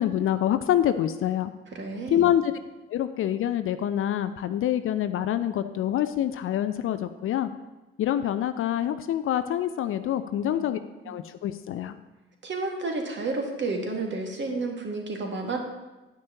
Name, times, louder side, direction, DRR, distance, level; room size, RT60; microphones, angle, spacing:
voice 1, 0.0-1.5 2.1-2.5 2.9-7.5 8.0-10.8 11.1-12.0, left 11 dB, 45° left, 11 dB, 0.6 m, -26 dB
voice 2, 1.7-2.3 10.4-10.7 11.0-11.2 12.4-15.6, right 3 dB, 40° right, 1 dB, 1.9 m, -31 dB
9.8 x 9.5 x 2.9 m, 1.1 s
figure-of-eight pair, 45°, 30 cm